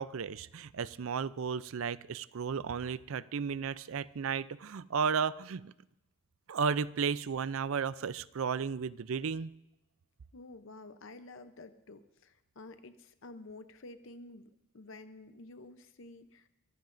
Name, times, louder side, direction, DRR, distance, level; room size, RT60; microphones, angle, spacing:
voice 1, 0.0-5.7 6.5-9.5, right 6 dB, 70° right, 18 dB, 0.4 m, -34 dB
voice 2, 10.3-16.5, left 2 dB, 60° left, 10 dB, 0.7 m, -50 dB
25.0 x 14.5 x 2.6 m, 0.89 s
head